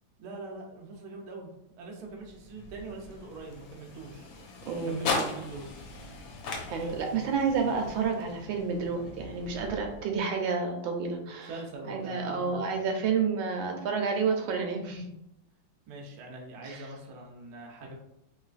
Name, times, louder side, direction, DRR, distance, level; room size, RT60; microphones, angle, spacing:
voice 1, 0.2-1.5 1.8-4.3 4.8-5.7 11.5-12.6 15.9-17.9, right 3 dB, 65° right, 0 dB, 1.1 m, -42 dB
sound 1, 2.0-10.3, left 3 dB, 90° left, 1.4 m, -39 dB
voice 2, 4.7-5.0 6.7-11.5 11.9-15.1 16.6-16.8, right 5 dB, 85° right, 3 dB, 1.3 m, -30 dB
3.2 x 3.1 x 2.4 m, 0.80 s
omnidirectional pair, 2.1 m